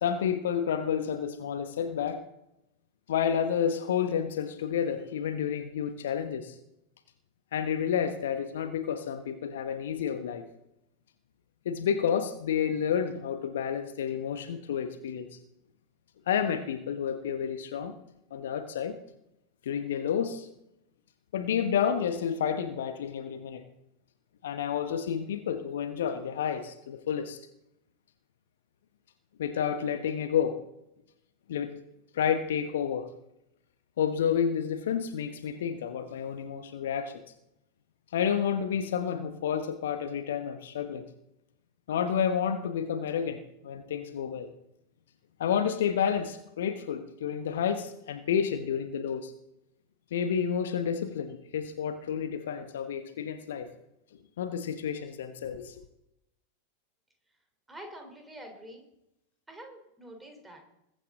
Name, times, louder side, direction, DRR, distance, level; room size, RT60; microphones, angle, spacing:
voice 1, 0.0-2.2 3.1-6.6 7.5-10.4 11.6-15.4 16.3-17.9 18.3-19.0 19.6-20.5 21.3-23.6 24.4-27.4 29.4-30.6 31.5-31.8 32.1-33.1 34.0-37.1 38.1-41.0 41.9-44.5 45.4-49.3 50.1-53.7 54.4-55.7, left 8 dB, 60° left, 9 dB, 1.1 m, -30 dB
voice 2, 57.7-58.8 59.5-60.6, right 1 dB, 10° right, 3 dB, 3.7 m, -46 dB
21.5 x 9.1 x 3.8 m, 0.84 s
figure-of-eight pair, 90°, 0 cm